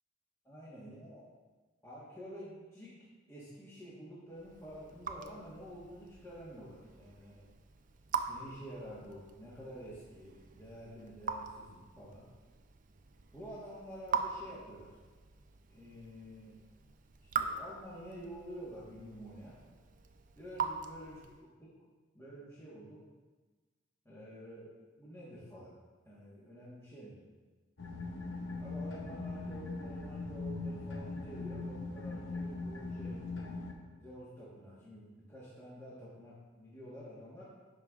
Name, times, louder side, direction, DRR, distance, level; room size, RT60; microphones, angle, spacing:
voice 1, 0.5-1.2 1.8-3.0 3.3-7.5 8.3-12.2 13.3-15.0 15.7-16.6 17.2-19.6 20.3-21.7 22.1-23.0 24.0-25.8 26.0-27.2 28.6-33.2 34.0-37.5, equal, 15° left, -8 dB, 1.3 m, -49 dB
Raindrop / Drip, 4.3-21.5, right 6 dB, 45° right, 0.4 m, -43 dB
sound 1, 27.8-33.7, left 3 dB, 75° left, 0.8 m, -40 dB
11.0 x 5.1 x 2.4 m, 1.3 s
head